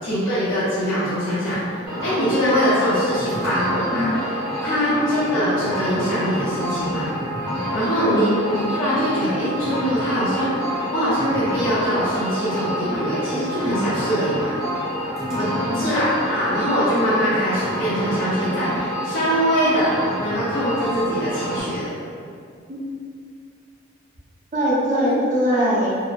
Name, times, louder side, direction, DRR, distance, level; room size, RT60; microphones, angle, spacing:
voice 1, 0.0-4.1 4.6-7.1 7.7-14.5 15.4-15.5 15.7-21.9 25.0-25.1, equal, 85° left, -11 dB, 0.7 m, -23 dB
sound 1, 1.8-21.6, equal, ahead, 0.7 m, -28 dB
voice 2, 15.3-16.0 22.7-22.9 24.5-25.9, equal, 40° right, -7 dB, 0.5 m, -22 dB
2.8 x 2.0 x 2.4 m, 2.3 s
head